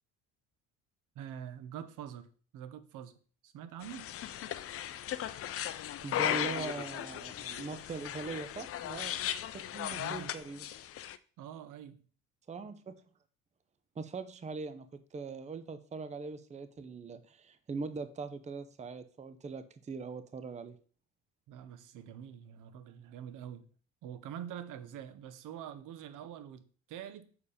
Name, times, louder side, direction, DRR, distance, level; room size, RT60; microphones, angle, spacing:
voice 1, 1.1-2.3 2.5-3.2 3.4-4.1 9.9-10.4 11.4-12.0 21.5-23.7 24.0-27.3, right 9 dB, 65° right, 1.0 m, -45 dB
sound 1, 3.8-11.2, left 11 dB, 45° left, 0.5 m, -37 dB
voice 2, 6.0-9.2 9.5-10.7 12.5-12.9 14.0-20.8, right 4 dB, 20° right, 0.6 m, -41 dB
6.9 x 4.6 x 5.0 m
supercardioid pair, 85°, 33 cm